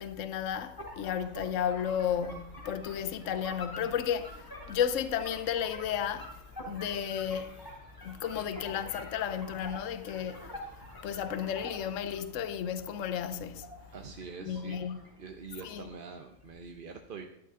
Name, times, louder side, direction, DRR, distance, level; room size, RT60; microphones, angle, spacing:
voice 1, 0.0-6.4 6.7-7.6 8.0-13.7 14.4-15.0 15.6-15.9, left 8 dB, 65° left, 1.1 m, -33 dB
sound 1, 0.8-12.2 12.6-15.2 15.4-16.2, equal, 15° left, 3.5 m, -47 dB
sound 2, 1.2-15.2, left 1 dB, 35° left, 3.2 m, -57 dB
voice 2, 13.9-14.8 15.2-17.2, right 5 dB, 45° right, 0.9 m, -44 dB
13.0 x 12.0 x 3.7 m
omnidirectional pair, 1.5 m